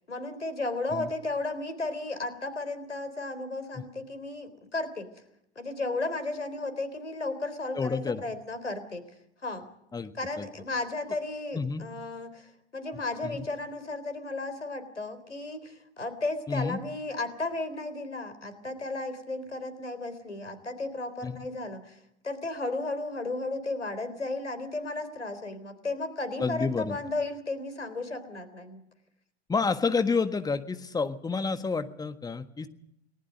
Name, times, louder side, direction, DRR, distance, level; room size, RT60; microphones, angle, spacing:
voice 1, 0.1-5.1 5.6-9.0 9.4-9.7 10.1-22.0 22.2-28.8, left 2 dB, 85° left, 11 dB, 3.8 m, -34 dB
voice 2, 7.7-8.2 9.9-10.5 11.5-11.8 12.9-13.5 16.5-16.8 21.2-21.4 26.4-27.0 29.5-32.7, left 4 dB, 10° left, 10 dB, 1.6 m, -29 dB
29.5 x 19.5 x 5.3 m, 0.75 s
figure-of-eight pair, 95°, 34 cm